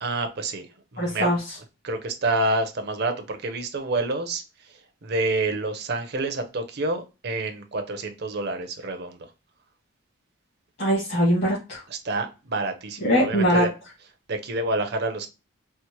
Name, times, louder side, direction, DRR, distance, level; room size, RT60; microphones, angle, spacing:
voice 1, 0.0-0.7 0.9-1.3 1.8-4.4 5.0-9.2 11.9-13.7 14.3-15.3, right 2 dB, 50° right, 0.6 m, -28 dB
voice 2, 1.0-1.6 10.8-11.8 13.0-13.6, equal, 55° left, 1.7 m, -22 dB
4.3 x 2.1 x 2.9 m
head